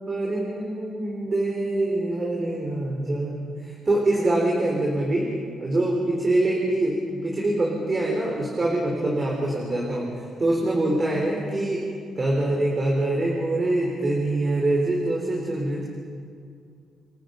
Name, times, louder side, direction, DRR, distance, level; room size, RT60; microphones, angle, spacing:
voice 1, 0.0-5.3 5.6-11.9 12.2-15.9, right 2 dB, 25° right, -1 dB, 4.0 m, -24 dB
29.5 x 25.0 x 5.3 m, 2.3 s
cardioid pair, 140°, 0 cm